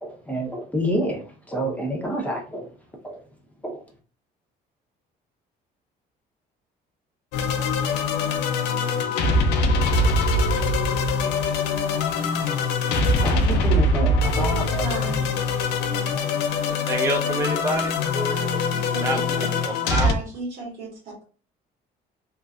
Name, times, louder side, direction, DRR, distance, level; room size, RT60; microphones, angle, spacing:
voice 1, 0.0-2.7 3.0-3.2 3.6-3.8 13.2-15.3 18.1-18.6, equal, 10° left, -1 dB, 0.8 m, -29 dB
sound 1, 7.3-20.1, left 2 dB, 85° left, 0.5 m, -23 dB
voice 2, 14.8-15.2 18.3-19.5 20.0-21.2, right 3 dB, 70° right, -2 dB, 1.5 m, -35 dB
voice 3, 16.6-17.9 18.9-20.1, right 2 dB, 15° right, 2 dB, 0.4 m, -28 dB
3.0 x 2.4 x 2.4 m, 0.38 s
cardioid pair, 110°, 17 cm